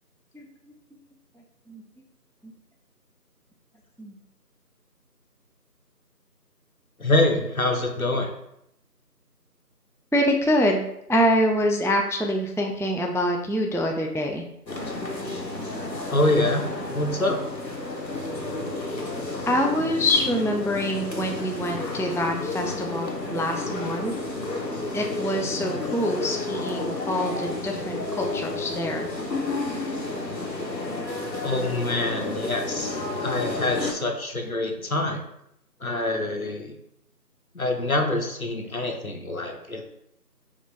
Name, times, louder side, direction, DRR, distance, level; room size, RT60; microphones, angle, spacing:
voice 1, 7.0-8.3 16.1-16.7 16.9-17.4 31.4-35.2 35.8-36.7 37.5-39.8, left 2 dB, 60° left, 3 dB, 0.8 m, -25 dB
voice 2, 10.1-14.5 19.5-24.1 24.9-29.1, equal, 5° left, 1 dB, 0.3 m, -25 dB
sound 1, 14.7-33.9, left 2 dB, 85° left, 1.0 m, -31 dB
5.0 x 2.5 x 3.2 m, 0.79 s
figure-of-eight pair, 180°, 49 cm